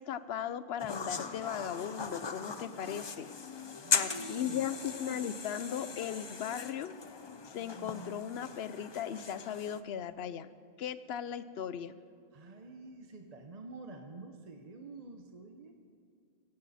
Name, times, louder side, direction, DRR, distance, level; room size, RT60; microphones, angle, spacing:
voice 1, 0.0-3.3 3.9-6.9 7.4-10.5 10.8-12.0, left 9 dB, 80° left, 14 dB, 0.9 m, -37 dB
sound 1, 0.8-9.8, left 5 dB, 30° left, 0.5 m, -39 dB
voice 2, 3.8-4.7 12.3-15.8, right 3 dB, 40° right, 4 dB, 0.9 m, -48 dB
16.0 x 15.5 x 4.2 m, 2.5 s
omnidirectional pair, 1.0 m